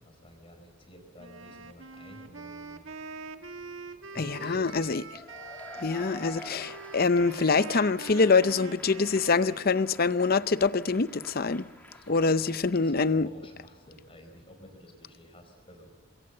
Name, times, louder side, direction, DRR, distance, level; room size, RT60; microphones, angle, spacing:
voice 1, 0.0-2.8 4.1-4.8 11.9-12.1 12.4-15.9, equal, 25° left, 4.4 m, -50 dB
Wind instrument woodwind instrument, 1.2-10.0, right 4 dB, 75° right, 1.7 m, -44 dB
voice 2, 4.2-5.2 5.8-11.7 12.1-13.3, left 4 dB, 50° left, 0.7 m, -25 dB
Cheering / Applause / Crowd, 5.1-12.8, left 1 dB, 10° left, 2.2 m, -48 dB
26.5 x 22.0 x 7.8 m
head